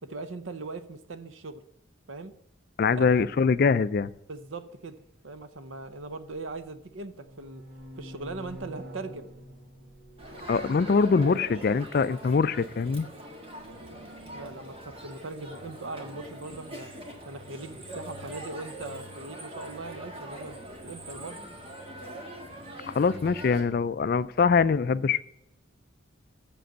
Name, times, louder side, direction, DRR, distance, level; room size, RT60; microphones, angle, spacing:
voice 1, 0.0-1.6 2.1-2.3 2.9-3.3 4.3-5.0 5.2-7.6 8.0-9.3 14.3-16.9 17.2-21.4, right 3 dB, 75° right, 12 dB, 0.8 m, -40 dB
voice 2, 2.8-4.1 10.5-13.1 22.9-25.2, left 5 dB, 45° left, 17 dB, 0.3 m, -23 dB
sound 1, 5.9-6.6 6.9-12.4 13.2-14.6, equal, 50° right, 1.5 m, -48 dB
Crowd, 10.2-23.6, right 1 dB, 30° right, 1.6 m, -42 dB
7.7 x 6.9 x 7.9 m, 0.86 s
head